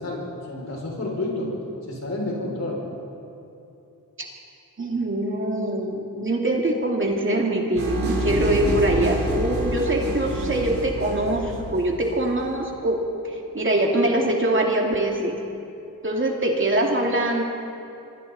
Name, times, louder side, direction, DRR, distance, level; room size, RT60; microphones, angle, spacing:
voice 1, 0.0-1.5 1.9-2.8, left 2 dB, 50° left, -3 dB, 6.6 m, -29 dB
voice 2, 4.8-15.4 16.0-17.4, right 1 dB, 35° right, 0 dB, 2.6 m, -23 dB
sound 1, 7.7-12.5, equal, 85° right, 6.8 m, -27 dB
25.5 x 25.0 x 4.3 m, 2.7 s
wide cardioid pair, 95°, 34 cm